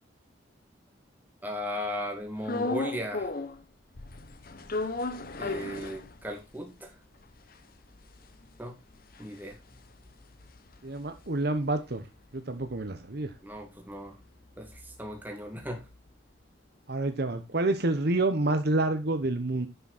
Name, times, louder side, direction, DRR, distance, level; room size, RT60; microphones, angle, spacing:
voice 1, 1.4-3.3 5.4-6.9 8.6-8.7 9.2-9.6 13.4-14.2 14.6-15.8, equal, 10° right, 2.2 m, -36 dB
sound 1, 2.4-3.6 3.9-6.5 6.9-7.0 7.2-11.7 12.0-16.1, left 3 dB, 50° left, 1.0 m, -37 dB
voice 2, 10.8-12.0 12.3-13.3 16.9-19.7, right 2 dB, 55° right, 1.0 m, -28 dB
10.5 x 6.1 x 4.2 m
head